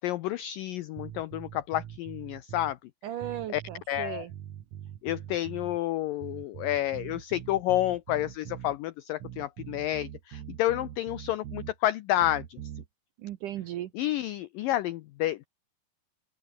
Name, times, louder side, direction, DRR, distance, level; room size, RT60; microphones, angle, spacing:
voice 1, 0.0-2.8 3.5-3.6 3.9-4.3 5.0-12.6 14.0-15.5, left 14 dB, 85° left, 1.9 m, -30 dB
sound 1, 1.0-2.8 3.2-5.8 6.2-8.8 9.2-11.8 12.2-12.9, right 11 dB, 60° right, 2.2 m, -43 dB
voice 2, 3.0-4.3 13.2-13.9, right 12 dB, 75° right, 2.0 m, -36 dB
open air
omnidirectional pair, 4.9 m